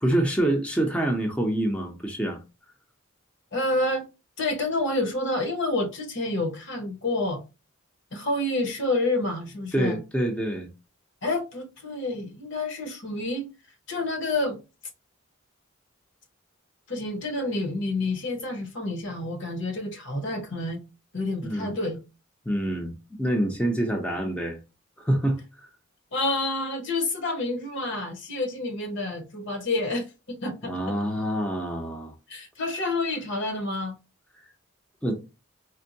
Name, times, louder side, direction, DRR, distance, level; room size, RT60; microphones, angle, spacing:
voice 1, 0.0-2.4 9.7-10.7 21.4-21.7 22.5-22.9 23.2-24.6 25.0-25.4 30.6-32.1 35.0-35.2, right 1 dB, 5° left, 0.6 m, -26 dB
voice 2, 3.5-4.1 4.4-7.4 8.1-10.0 11.2-13.5 13.9-14.6 16.9-20.8 21.1-22.0 26.1-30.8 32.3-34.0, left 2 dB, 60° left, 1.0 m, -28 dB
4.3 x 2.1 x 2.6 m
head